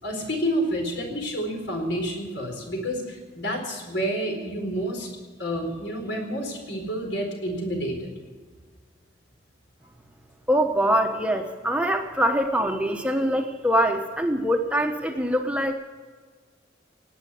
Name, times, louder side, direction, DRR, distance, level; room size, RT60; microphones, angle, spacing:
voice 1, 0.0-5.1 5.4-8.1, equal, 75° left, 2 dB, 4.4 m, -29 dB
voice 2, 10.5-15.8, equal, 5° right, 4 dB, 1.0 m, -23 dB
18.5 x 8.9 x 8.4 m, 1.5 s
head